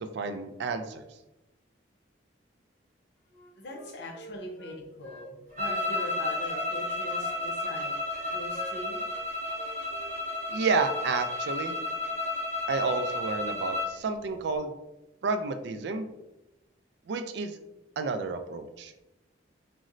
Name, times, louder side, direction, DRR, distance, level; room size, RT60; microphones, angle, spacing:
voice 1, 0.1-1.0 10.5-11.8 12.7-14.7 15.2-16.1 17.1-17.6 18.0-18.9, right 4 dB, 65° right, 7 dB, 0.3 m, -30 dB
Wind instrument woodwind instrument, 3.3-6.7 7.1-10.2 10.5-10.7, left 1 dB, 10° left, 0.4 m, -49 dB
voice 2, 3.6-7.9 8.2-9.0, left 1 dB, 65° left, 0 dB, 0.6 m, -41 dB
sound 1, 5.6-14.0, left 2 dB, 40° right, 0.8 m, -32 dB
3.9 x 2.0 x 2.5 m, 0.98 s
head